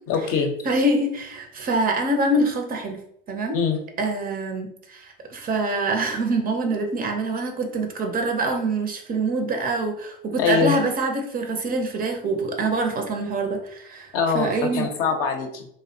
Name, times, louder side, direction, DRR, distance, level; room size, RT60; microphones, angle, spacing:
voice 1, 0.1-0.5 3.5-3.8 10.4-10.7 14.1-15.7, left 6 dB, 50° left, 4 dB, 0.6 m, -23 dB
voice 2, 0.6-3.0 3.3-3.6 4.0-14.1 14.3-14.9, right 2 dB, 30° right, 4 dB, 0.5 m, -25 dB
2.5 x 2.0 x 2.7 m, 0.69 s
hypercardioid pair, 95°, 29 cm